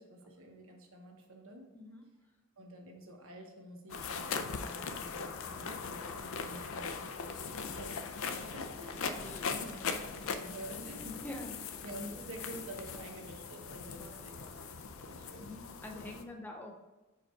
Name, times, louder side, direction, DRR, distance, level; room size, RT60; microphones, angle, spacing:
voice 1, 0.0-1.7 2.6-10.1 10.3-11.6 11.8-14.5 15.0-15.5 16.0-16.3, right 1 dB, 75° right, 2 dB, 1.0 m, -49 dB
voice 2, 1.7-2.0 5.2-5.6 9.0-9.8 11.2-11.5 14.0-14.3 15.4-16.8, left 1 dB, 10° left, 2 dB, 0.6 m, -47 dB
sound 1, 3.9-16.2, left 5 dB, 70° left, 0.5 m, -40 dB
4.9 x 4.8 x 4.5 m, 1.1 s
head